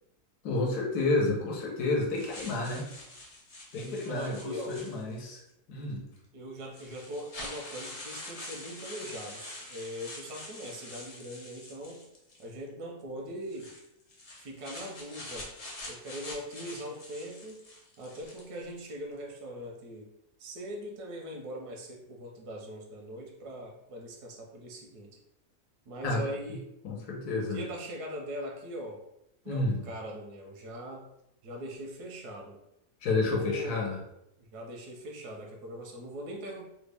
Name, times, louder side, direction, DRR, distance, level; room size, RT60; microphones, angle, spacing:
voice 1, 0.4-2.9 3.7-5.4 5.7-6.0 26.0-26.2 26.8-27.6 29.5-29.8 33.0-34.0, left 2 dB, 85° left, -1 dB, 1.3 m, -30 dB
sound 1, 2.1-5.3 6.2-6.3 6.7-12.5 13.4-18.6, left 2 dB, 65° left, 0.3 m, -45 dB
voice 2, 3.8-4.8 6.3-12.1 12.4-13.8 14.4-15.5 15.8-17.6 18.0-20.1 20.4-25.2 25.9-26.7 27.3-29.0 29.4-31.1 31.4-32.6 33.2-33.9 34.4-36.7, equal, 90° right, 1 dB, 1.2 m, -41 dB
3.4 x 2.1 x 3.3 m, 0.83 s
omnidirectional pair, 1.6 m